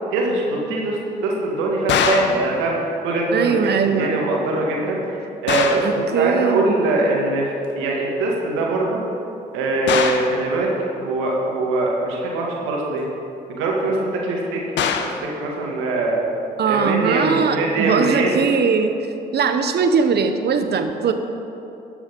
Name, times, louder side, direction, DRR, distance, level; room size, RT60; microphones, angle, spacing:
voice 1, 0.1-2.8 3.0-3.5 3.8-9.0 9.5-10.7 11.0-13.0 13.5-14.6 15.0-16.2 16.6-18.4, right 2 dB, 80° right, -2 dB, 1.8 m, -22 dB
sound 1, 1.9-2.4 5.5-6.0 9.9-10.4 14.8-15.2, left 7 dB, 65° left, 0.9 m, -21 dB
voice 2, 3.3-4.2 5.8-6.8 16.6-18.9 19.3-21.1, right 6 dB, 55° right, 7 dB, 1.0 m, -20 dB
12.5 x 7.1 x 5.4 m, 3.0 s
hypercardioid pair, 50°, 20 cm